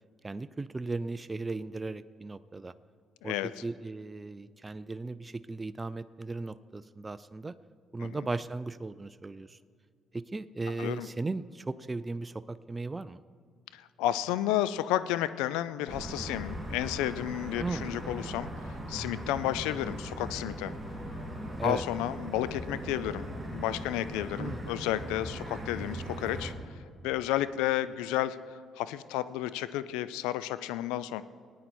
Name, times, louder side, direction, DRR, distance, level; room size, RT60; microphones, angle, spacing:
voice 1, 0.2-2.7 3.2-3.4 3.6-7.5 7.9-9.6 10.1-13.2 17.6-17.9 21.6-21.8 24.4-24.7, right 3 dB, 25° right, 14 dB, 0.4 m, -36 dB
voice 2, 13.7-18.5 18.9-20.7 21.6-26.5 27.0-28.4 28.8-31.2, left 13 dB, 90° left, 15 dB, 0.4 m, -32 dB
sound 1, 15.9-26.5, equal, 5° right, 2.9 m, -39 dB
19.0 x 9.3 x 4.3 m, 2.1 s
supercardioid pair, 65°, 0 cm